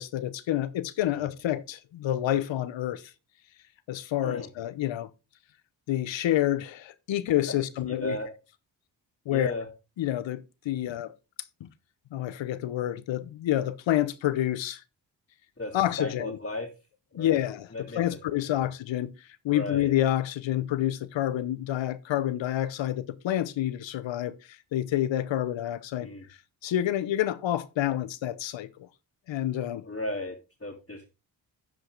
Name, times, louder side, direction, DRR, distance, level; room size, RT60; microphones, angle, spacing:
voice 1, 0.0-3.0 3.9-5.1 5.9-8.2 9.3-9.5 10.0-11.1 12.1-14.8 15.7-16.4 17.1-17.7 18.0-19.1 19.4-24.3 24.7-26.1 26.6-28.7 29.3-29.8, left 12 dB, 80° left, 0.9 m, -28 dB
voice 2, 9.3-9.7 15.6-16.7 17.1-17.4 17.7-18.2 18.5-18.7 19.5-19.9 26.0-26.2 29.8-31.1, left 1 dB, 25° left, 2.9 m, -35 dB
12.0 x 5.1 x 3.9 m
supercardioid pair, 50°, 45 cm